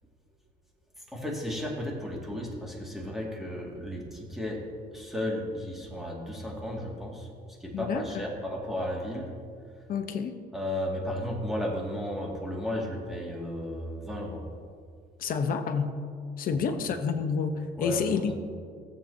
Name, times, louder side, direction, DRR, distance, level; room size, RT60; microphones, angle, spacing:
voice 1, 1.1-4.6 4.9-7.3 7.6-9.3 10.5-14.5 17.8-18.3, left 1 dB, ahead, -3 dB, 2.2 m, -34 dB
voice 2, 7.7-8.2 9.9-10.3 15.2-15.9 16.4-18.3, left 6 dB, 55° left, 7 dB, 1.0 m, -29 dB
17.5 x 7.8 x 2.8 m, 2.1 s
cardioid pair, 110°, 17 cm